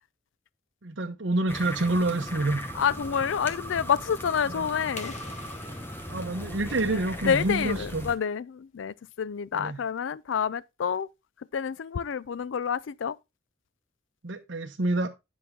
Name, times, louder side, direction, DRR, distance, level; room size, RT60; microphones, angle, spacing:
voice 1, 0.8-2.6 4.4-4.7 6.1-8.1 9.5-9.8 14.2-15.1, right 2 dB, 65° right, 0.9 m, -28 dB
sound 1, 1.5-8.2, equal, 10° left, 1.1 m, -38 dB
voice 2, 2.8-5.1 6.9-7.0 7.2-11.1 11.5-13.2, left 7 dB, 70° left, 0.4 m, -28 dB
sound 2, 5.0-7.6, left 3 dB, 35° left, 1.4 m, -47 dB
10.0 x 6.0 x 3.6 m
head